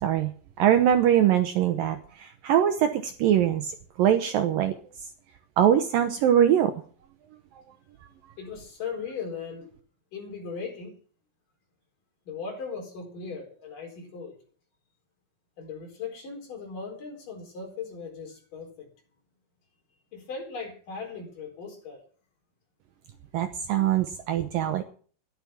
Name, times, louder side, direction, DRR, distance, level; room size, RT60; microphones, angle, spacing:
voice 1, 0.6-4.7 5.6-6.7 23.3-24.8, right 10 dB, 75° right, 8 dB, 2.2 m, -22 dB
voice 2, 8.4-9.7 10.1-10.9 12.3-14.4 15.6-18.9 20.1-22.0, left 5 dB, 55° left, 1 dB, 5.7 m, -38 dB
13.0 x 11.5 x 6.0 m, 0.43 s
omnidirectional pair, 4.8 m